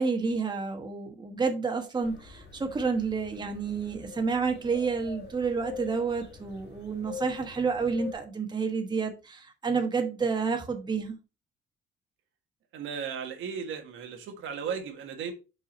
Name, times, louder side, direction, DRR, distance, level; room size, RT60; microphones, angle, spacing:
voice 1, 0.0-11.2, right 5 dB, 20° right, 1.2 m, -29 dB
sound 1, 2.0-8.1, left 6 dB, 60° left, 1.6 m, -45 dB
voice 2, 12.7-15.3, right 6 dB, 80° right, 1.5 m, -35 dB
5.5 x 4.6 x 4.2 m
cardioid pair, 125°, 20 cm